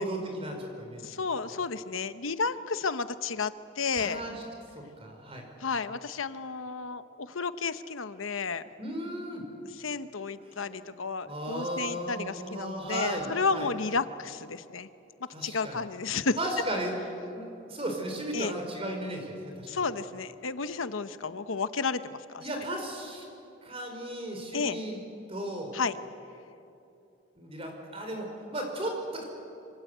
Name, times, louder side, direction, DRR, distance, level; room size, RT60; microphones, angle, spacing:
voice 1, 0.0-1.1 4.0-4.4 4.7-5.4 8.8-9.4 10.5-10.8 11.2-13.7 15.3-15.8 16.4-16.9 17.3-19.7 22.4-23.3 23.6-25.0 25.3-25.8 27.4-29.2, right 1 dB, 30° right, 3 dB, 5.1 m, -35 dB
voice 2, 1.0-4.2 5.6-8.6 9.8-14.9 15.4-16.4 18.3-18.5 19.7-22.4 24.5-24.8 25.7-26.0, left 4 dB, 85° left, 11 dB, 1.0 m, -32 dB
26.5 x 25.5 x 8.1 m, 2.8 s
head